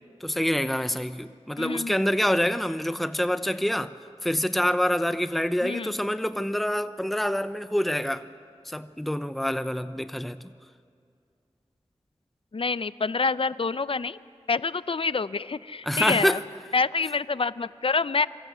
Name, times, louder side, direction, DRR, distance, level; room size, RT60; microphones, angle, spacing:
voice 1, 0.2-3.9 4.2-8.3 8.6-10.5 15.9-16.4, equal, ahead, 0.8 m, -26 dB
voice 2, 1.6-2.0 5.6-5.9 12.5-14.2 14.5-16.4 16.7-18.3, left 4 dB, 55° left, 0.6 m, -27 dB
26.5 x 23.5 x 8.1 m
wide cardioid pair, 45°, 11 cm